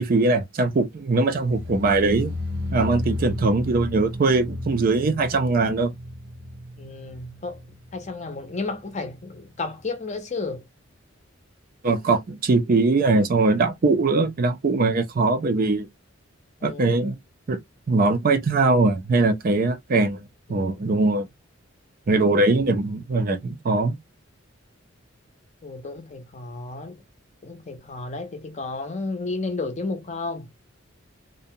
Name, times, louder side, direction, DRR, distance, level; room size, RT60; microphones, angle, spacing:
voice 1, 0.0-2.3 2.7-5.9 11.8-15.9 16.6-17.2 17.5-17.6 17.9-20.2 20.5-21.3 22.1-24.0, right 3 dB, 45° right, 0.4 m, -21 dB
sound 1, 1.2-8.3 8.6-9.1 9.4-9.5, left 1 dB, 65° right, 0.8 m, -33 dB
voice 2, 6.8-7.6 7.9-10.7 16.6-16.9 22.3-22.7 25.6-27.0 27.4-30.5, left 3 dB, 35° left, 0.6 m, -32 dB
2.6 x 2.1 x 2.6 m
head